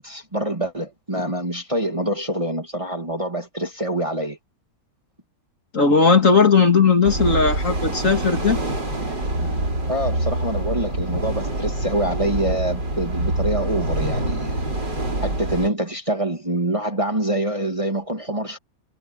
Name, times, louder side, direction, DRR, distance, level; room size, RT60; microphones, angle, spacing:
voice 1, 0.0-4.4 9.4-9.5 9.9-14.6 15.2-18.6, right 1 dB, 15° right, 2.2 m, -25 dB
voice 2, 5.7-8.6, left 5 dB, 45° left, 2.7 m, -17 dB
sound 1, 7.0-15.7, right 1 dB, 70° right, 8.1 m, -25 dB
omnidirectional pair, 2.0 m